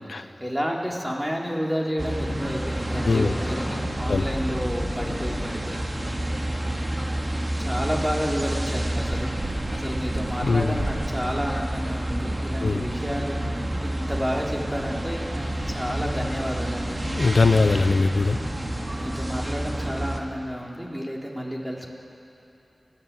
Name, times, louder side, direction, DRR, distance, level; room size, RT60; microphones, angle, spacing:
voice 1, 0.1-5.8 7.6-17.0 18.9-21.9, equal, 10° right, -2 dB, 3.5 m, -31 dB
sound 1, 2.0-20.2, right 1 dB, 35° right, 2.2 m, -29 dB
sound 2, 2.4-7.3, left 1 dB, 55° left, 2.5 m, -38 dB
voice 2, 10.4-10.8 12.6-12.9 17.0-18.4, left 3 dB, 85° left, 10 dB, 0.8 m, -21 dB
29.5 x 10.0 x 9.0 m, 2.8 s
wide cardioid pair, 60°, 0 cm